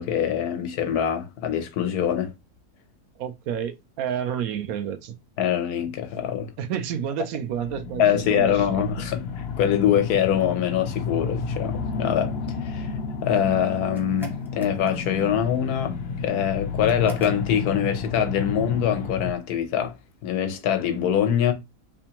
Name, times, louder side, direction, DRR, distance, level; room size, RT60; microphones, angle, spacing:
voice 1, 0.0-2.3 5.4-6.5 8.0-9.3 9.6-12.3 12.6-12.9 13.2-19.9 20.2-21.5, left 9 dB, 85° left, 1.3 m, -24 dB
voice 2, 3.2-5.2 6.6-9.1, right 8 dB, 75° right, 1.0 m, -30 dB
sound 1, 7.5-19.3, left 5 dB, 60° left, 0.6 m, -31 dB
sound 2, 13.9-15.3 16.9-17.7, equal, 5° right, 0.4 m, -40 dB
3.4 x 3.3 x 2.9 m
omnidirectional pair, 1.6 m